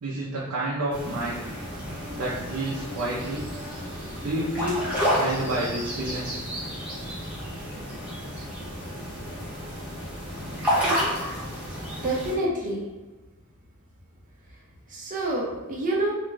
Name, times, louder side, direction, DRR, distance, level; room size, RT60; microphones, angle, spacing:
voice 1, 0.0-1.4 2.2-3.4 4.2-6.4, right 1 dB, 80° right, -6 dB, 0.6 m, -29 dB
sound 1, 0.9-12.3, equal, 5° right, 0.9 m, -31 dB
voice 2, 12.0-12.8 14.9-16.1, right 1 dB, 35° right, -4 dB, 0.7 m, -27 dB
2.5 x 2.2 x 3.8 m, 1.2 s
head